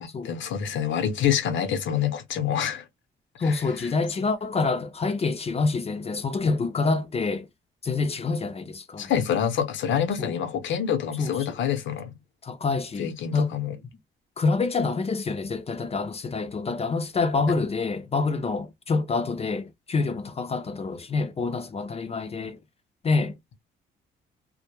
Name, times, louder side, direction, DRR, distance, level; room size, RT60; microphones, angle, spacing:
voice 1, 0.0-2.9 3.4-3.9 9.0-12.1 13.0-13.8 17.5-17.6, left 8 dB, 70° left, 0.7 m, -27 dB
voice 2, 3.4-7.5 7.8-9.1 10.2-10.3 11.2-11.6 12.4-13.5 14.4-22.6 23.0-23.4, left 4 dB, 30° left, 0.5 m, -27 dB
2.2 x 2.0 x 2.9 m
cardioid pair, 90°, 20 cm